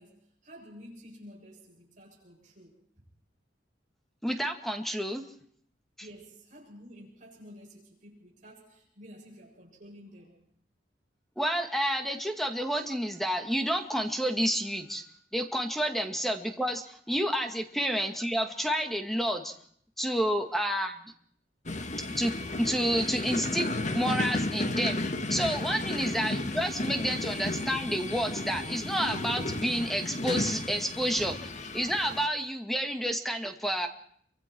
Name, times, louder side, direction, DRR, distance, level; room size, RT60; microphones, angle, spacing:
voice 1, 0.0-3.0 6.0-10.4 21.7-21.9, equal, 45° right, -3 dB, 7.4 m, -51 dB
voice 2, 4.2-5.2 11.4-15.0 15.3-19.5 20.0-21.1 22.2-25.0 25.3-33.9, equal, ahead, 5 dB, 2.1 m, -30 dB
sound 1, 21.7-32.3, left 2 dB, 45° left, 1.6 m, -33 dB
28.5 x 24.5 x 4.7 m, 0.64 s
head